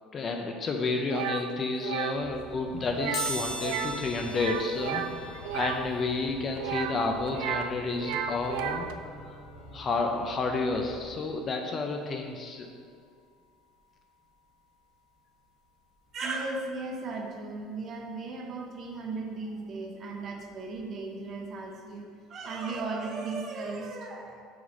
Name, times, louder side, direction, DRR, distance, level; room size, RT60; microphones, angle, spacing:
voice 1, 0.1-8.9 9.3-9.4 9.7-12.7, left 3 dB, 25° left, 4 dB, 0.5 m, -31 dB
sound 1, 1.1-1.4 1.8-2.2 2.9-3.3 3.6-4.0 4.3-5.8 6.6-7.7 7.9-8.9, right 9 dB, 70° right, 0.4 m, -33 dB
Organ, 2.1-11.3, left 1 dB, 80° left, 1.7 m, -48 dB
sound 2, 3.1-13.8 14.3-14.4 15.5-15.6 15.9-18.0 18.4-21.0 21.3-21.5 21.8-21.9, left 1 dB, 45° left, 1.5 m, -43 dB
voice 2, 16.1-22.0 22.3-24.4, right 3 dB, 30° right, 2 dB, 0.8 m, -36 dB
6.1 x 4.0 x 6.1 m, 2.1 s
cardioid pair, 165°, 0 cm